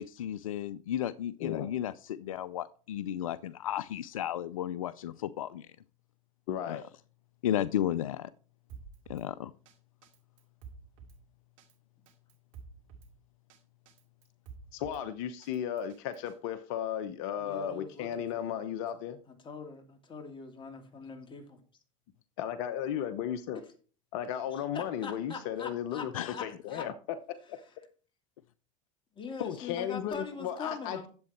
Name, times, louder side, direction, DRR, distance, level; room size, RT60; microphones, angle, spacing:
voice 1, 0.0-5.7 6.7-6.8 7.4-8.3 9.1-9.5 26.1-26.4, left 11 dB, 90° left, 0.5 m, -34 dB
voice 2, 6.5-6.8 14.7-19.2 22.4-23.6 24.1-26.1 26.4-26.9 27.3-27.6 29.4-31.1, left 9 dB, 65° left, 1.0 m, -35 dB
Drum kit, 8.7-9.3 9.7-9.8 10.0-11.2 11.6-11.7 12.1-13.1 13.5-13.6 13.9-15.0 15.4-16.3, right 5 dB, 75° right, 2.5 m, -50 dB
voice 3, 17.4-18.5 19.3-21.6 24.5-26.9 29.1-31.1, left 5 dB, 30° left, 2.7 m, -42 dB
10.5 x 8.0 x 4.4 m
hypercardioid pair, 90°, 17 cm